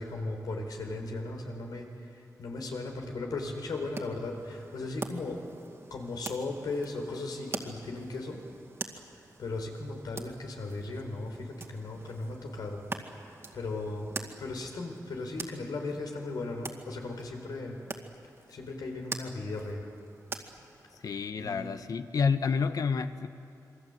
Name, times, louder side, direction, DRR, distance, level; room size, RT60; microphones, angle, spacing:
voice 1, 0.0-1.9 2.4-5.4 5.9-8.4 9.4-12.8 13.2-14.1 14.4-17.8 18.5-19.9 21.4-21.7, left 2 dB, 85° left, 2 dB, 4.3 m, -37 dB
sound 1, 3.7-21.1, right 3 dB, 40° right, 2.2 m, -45 dB
voice 2, 21.0-23.3, left 5 dB, 65° left, 10 dB, 1.2 m, -29 dB
27.5 x 23.0 x 8.1 m, 2.7 s
cardioid pair, 90°, 7 cm